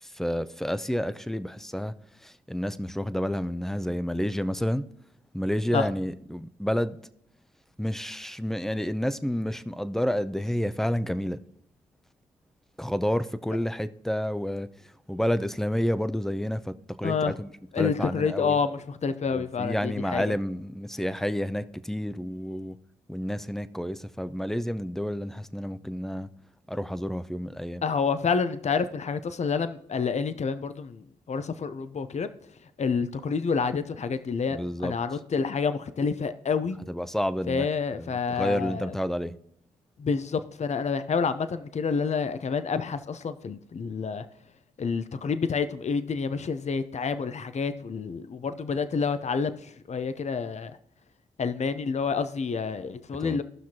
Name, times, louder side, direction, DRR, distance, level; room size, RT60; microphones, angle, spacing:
voice 1, 0.0-1.9 2.2-4.8 5.3-7.0 7.8-11.4 12.8-14.7 15.1-17.5 17.8-18.6 19.3-22.8 23.1-26.3 26.7-27.8 34.5-34.9 36.9-39.4 53.2-53.4, equal, ahead, 0.6 m, -30 dB
voice 2, 17.7-20.2 27.8-32.3 32.8-36.8 37.5-38.9 40.0-44.3 44.8-50.8 51.4-53.4, left 5 dB, 45° left, 0.7 m, -28 dB
16.5 x 5.9 x 2.9 m
supercardioid pair, 50°, 17 cm